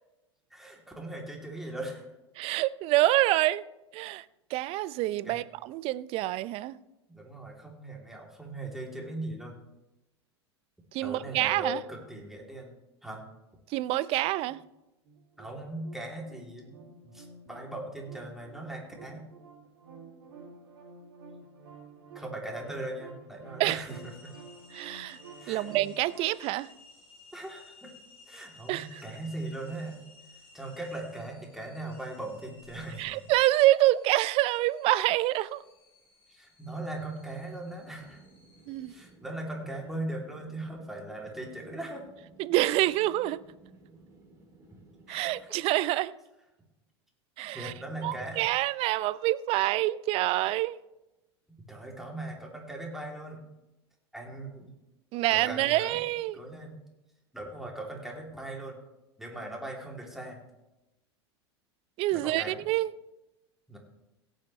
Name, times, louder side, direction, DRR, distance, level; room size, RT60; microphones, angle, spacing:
voice 1, 0.5-2.0 5.2-5.4 7.1-9.6 11.0-12.7 13.0-13.2 15.4-16.8 17.1-19.2 22.1-24.3 25.4-25.7 27.3-27.9 28.3-30.0 30.5-33.2 36.3-38.2 38.9-42.0 45.1-45.6 47.4-48.5 51.7-53.4 54.1-54.7 55.3-56.0 56.3-56.8 57.3-58.8 59.2-60.4 62.1-62.6 63.7-63.8, right 1 dB, ahead, 2.9 m, -39 dB
voice 2, 2.4-3.6 3.9-4.2 4.5-6.8 10.9-11.8 13.7-14.6 23.6-23.8 24.7-25.2 25.5-26.7 28.7-29.0 33.0-35.6 38.7-38.9 42.4-43.4 45.1-46.1 47.4-47.7 48.0-50.8 55.1-56.4 62.0-62.9, right 16 dB, 45° right, 0.5 m, -27 dB
sound 1, 15.0-26.3, right 4 dB, 65° right, 2.8 m, -51 dB
sound 2, 23.8-39.1, left 3 dB, 35° left, 4.0 m, -57 dB
sound 3, 37.6-45.5, right 3 dB, 20° right, 3.1 m, -57 dB
17.0 x 9.1 x 3.2 m
figure-of-eight pair, 85°, 14 cm